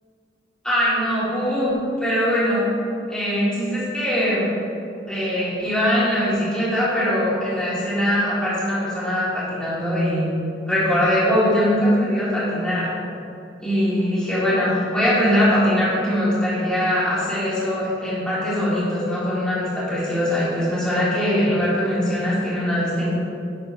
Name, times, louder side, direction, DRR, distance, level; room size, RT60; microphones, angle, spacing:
voice 1, 0.6-2.6 3.1-4.5 5.1-10.3 10.7-12.9 13.6-23.1, equal, 5° left, -10 dB, 1.6 m, -21 dB
9.3 x 4.0 x 5.5 m, 2.6 s
head